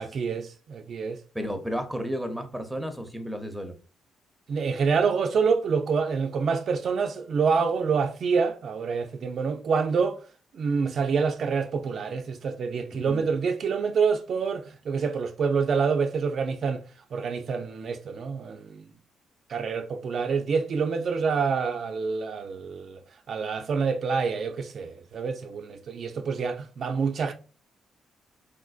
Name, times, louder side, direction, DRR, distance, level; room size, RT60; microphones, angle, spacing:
voice 1, 0.0-1.2 4.5-10.2 10.5-16.8 17.1-18.8 19.5-23.0 23.3-27.3, right 5 dB, 55° right, 0.3 m, -27 dB
voice 2, 1.3-3.8 12.9-13.2, equal, 5° right, 0.6 m, -33 dB
3.6 x 2.5 x 2.3 m
cardioid pair, 90°, 0 cm